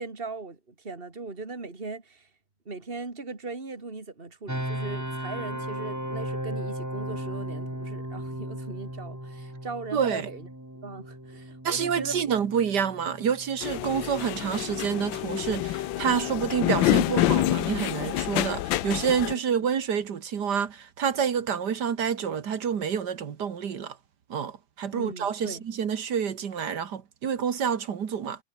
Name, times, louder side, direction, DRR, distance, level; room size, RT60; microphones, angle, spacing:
voice 1, 0.0-2.3 2.7-10.5 10.8-12.4 24.9-25.6, right 3 dB, 25° right, 3.5 m, -39 dB
sound 1, 4.5-17.3, right 1 dB, 10° right, 4.7 m, -37 dB
voice 2, 9.9-10.3 11.6-24.0 24.3-28.4, right 7 dB, 60° right, 1.9 m, -28 dB
sound 2, 13.6-19.3, left 15 dB, 75° left, 1.4 m, -27 dB
omnidirectional pair, 2.2 m